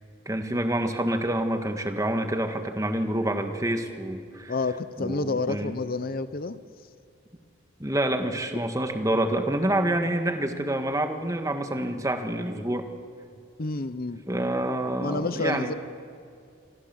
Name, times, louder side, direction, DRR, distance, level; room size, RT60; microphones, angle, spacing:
voice 1, 0.2-4.5 5.0-5.7 7.8-12.8 14.3-15.7, right 1 dB, 15° right, 6 dB, 1.7 m, -27 dB
voice 2, 4.5-6.6 13.6-14.2 15.0-15.7, left 3 dB, 45° left, 13 dB, 0.7 m, -29 dB
27.5 x 23.5 x 7.7 m, 2.4 s
head